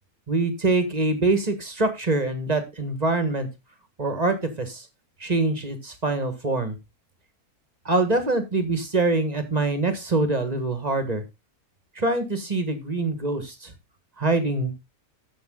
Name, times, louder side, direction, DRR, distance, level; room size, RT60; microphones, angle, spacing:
voice 1, 0.3-3.5 4.0-4.9 5.2-6.8 7.8-11.2 11.9-13.7 14.2-14.7, right 2 dB, 25° right, 9 dB, 1.6 m, -24 dB
13.5 x 5.7 x 3.8 m, 0.23 s
omnidirectional pair, 1.6 m